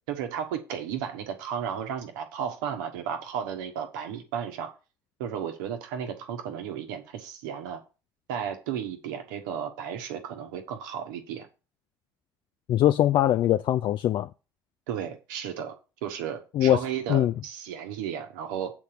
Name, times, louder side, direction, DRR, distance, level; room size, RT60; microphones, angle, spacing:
voice 1, 0.1-4.7 5.2-7.8 8.3-11.5 14.9-15.7 16.0-18.7, right 8 dB, 70° right, 1.4 m, -34 dB
voice 2, 12.7-14.3 16.5-16.8 17.1-17.3, left 12 dB, 50° left, 0.4 m, -22 dB
8.4 x 4.2 x 6.7 m
figure-of-eight pair, 55°, 11 cm